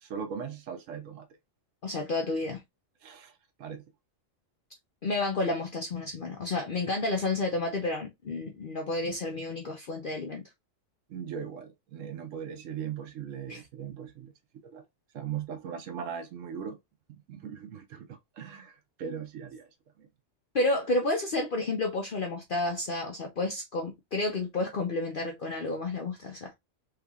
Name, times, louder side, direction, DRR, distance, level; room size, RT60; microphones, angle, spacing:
voice 1, 0.0-1.3 3.0-3.8 11.1-14.3 14.6-14.8 15.1-16.8 17.3-19.7 20.0-20.1, right 7 dB, 85° right, 1.1 m, -39 dB
voice 2, 1.8-2.6 5.0-10.4 13.5-13.6 20.5-26.5, left 2 dB, 50° left, 0.8 m, -30 dB
3.6 x 3.2 x 2.3 m
omnidirectional pair, 1.3 m